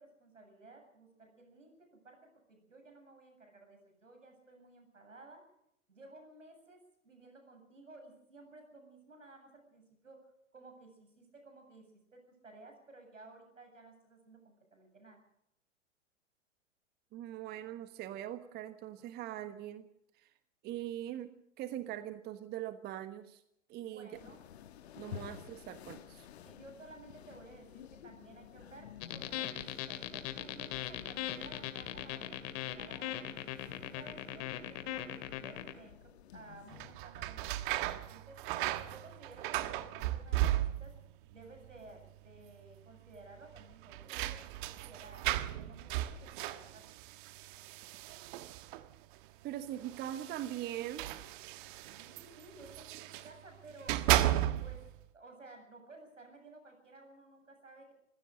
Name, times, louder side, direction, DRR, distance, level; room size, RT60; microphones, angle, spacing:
voice 1, 0.0-5.4 5.9-10.2 10.5-11.8 12.1-15.2 23.8-24.4 26.4-32.4 32.7-33.3 33.7-38.4 38.9-40.9 41.3-46.9 52.0-54.1 54.6-54.8 55.1-57.9, right 2 dB, 80° right, 4 dB, 8.0 m, -55 dB
voice 2, 17.1-19.9 20.6-23.4 23.7-24.1 25.0-26.3 49.4-51.1, right 12 dB, 25° right, 11 dB, 1.2 m, -41 dB
sound 1, 24.1-36.9, left 10 dB, 55° left, 1.8 m, -53 dB
sound 2, 29.0-35.7, left 12 dB, 35° left, 2.3 m, -39 dB
sound 3, 36.7-41.1 41.4-42.1 42.4-42.5 43.5-49.0 49.8-53.3 53.7-54.9, right 14 dB, 40° right, 1.4 m, -35 dB
27.0 x 16.0 x 6.5 m, 0.76 s
figure-of-eight pair, 105°, 37 cm